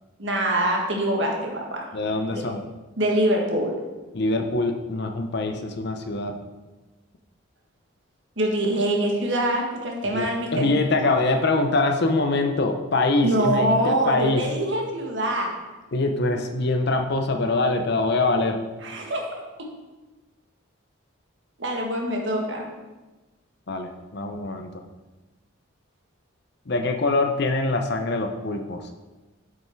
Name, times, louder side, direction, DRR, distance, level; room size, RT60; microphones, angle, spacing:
voice 1, 0.2-1.9 2.3-2.4 3.0-3.8 8.4-10.7 13.2-15.5 18.8-19.3 21.6-22.7, right 1 dB, 60° right, 0 dB, 1.6 m, -24 dB
voice 2, 1.9-2.6 4.1-6.4 10.1-14.4 15.9-18.6 23.7-24.7 26.7-29.0, left 2 dB, 55° left, 5 dB, 0.7 m, -24 dB
7.8 x 5.6 x 4.6 m, 1.2 s
head